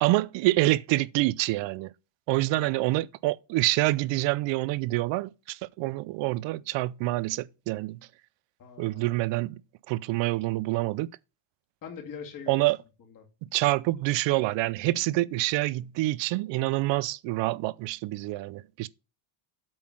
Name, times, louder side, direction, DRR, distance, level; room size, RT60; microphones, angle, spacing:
voice 1, 0.0-1.9 2.3-8.0 8.8-9.6 9.9-11.1 12.5-12.8 13.5-18.9, right 19 dB, 65° right, 0.6 m, -27 dB
voice 2, 2.5-2.8 8.6-9.0 11.8-12.6 13.2-13.3, left 6 dB, 40° left, 2.3 m, -42 dB
8.7 x 3.9 x 6.1 m
cardioid pair, 165°, 48 cm